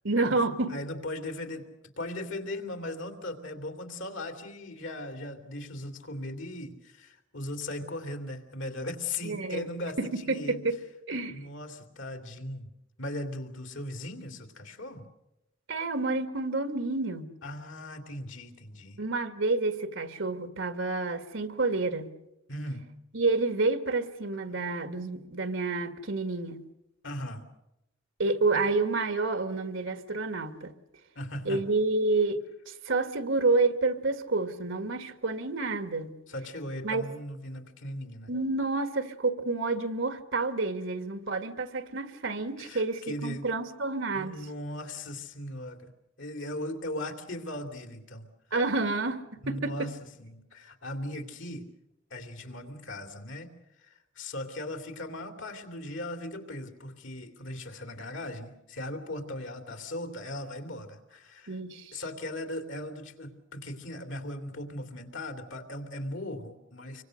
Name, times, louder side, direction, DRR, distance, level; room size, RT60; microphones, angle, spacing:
voice 1, 0.0-0.8 9.2-9.7 10.0-10.8 11.1-11.5 15.7-17.3 19.0-22.1 23.1-26.6 28.2-30.7 31.4-32.4 32.7-36.2 36.8-37.1 38.3-44.4 48.5-49.8 61.5-62.0, right 3 dB, 80° right, 9 dB, 1.8 m, -29 dB
voice 2, 0.7-1.7 2.0-10.6 11.3-12.7 13.0-15.1 17.4-19.0 22.5-22.8 27.0-27.4 31.1-31.7 36.3-38.3 42.6-43.5 44.1-45.9 46.2-48.3 49.4-51.7 52.1-53.5 53.8-61.6 61.9-67.0, left 1 dB, 75° left, 7 dB, 2.9 m, -38 dB
26.0 x 24.5 x 6.5 m, 0.89 s
head